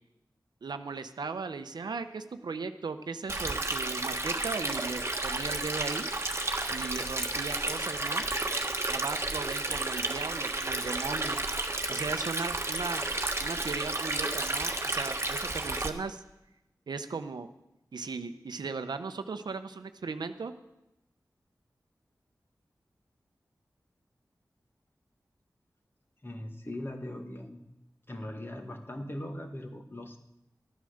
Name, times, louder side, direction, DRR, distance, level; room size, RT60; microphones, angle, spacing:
voice 1, 0.6-6.0 6.7-8.2 8.9-11.4 11.9-13.0 13.4-16.2 16.9-17.5 17.9-20.5, right 4 dB, 85° right, 9 dB, 0.8 m, -37 dB
Stream, 3.3-15.9, right 2 dB, 35° right, 1.3 m, -32 dB
voice 2, 26.2-27.6 28.1-30.2, left 1 dB, 30° left, 4 dB, 1.8 m, -40 dB
13.0 x 9.4 x 6.5 m, 0.89 s
cardioid pair, 45°, 7 cm